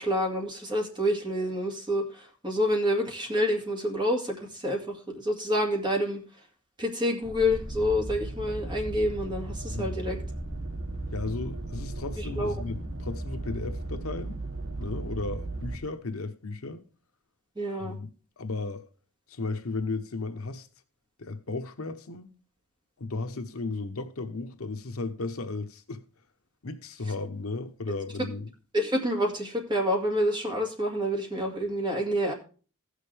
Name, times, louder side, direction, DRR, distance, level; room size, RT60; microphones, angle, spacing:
voice 1, 0.0-6.2 6.8-10.2 12.2-12.5 17.6-18.0 28.7-32.3, equal, 20° right, 2.2 m, -28 dB
sound 1, 7.2-15.8, right 2 dB, 65° right, 2.2 m, -36 dB
voice 2, 11.1-14.4 14.8-16.8 17.8-18.1 18.4-18.9 19.3-20.7 21.2-22.3 23.0-26.0 26.6-28.5, left 3 dB, 70° left, 0.9 m, -35 dB
16.0 x 6.5 x 3.3 m
head